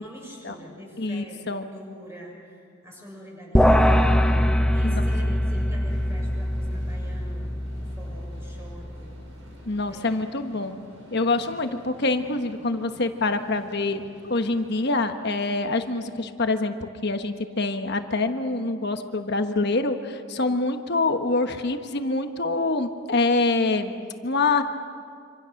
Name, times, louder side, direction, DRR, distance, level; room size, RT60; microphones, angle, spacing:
voice 1, 0.0-9.2 9.8-10.2, equal, 15° right, -2 dB, 6.4 m, -45 dB
voice 2, 1.0-1.7 4.8-4.9 9.7-10.8 11.1-23.9 24.2-24.6, left 3 dB, 55° left, 7 dB, 1.3 m, -25 dB
sound 1, 3.5-9.1, equal, 5° left, 0.8 m, -22 dB
sound 2, 5.9-14.9, equal, 80° right, 6.0 m, -50 dB
26.5 x 26.0 x 6.5 m, 2.3 s
head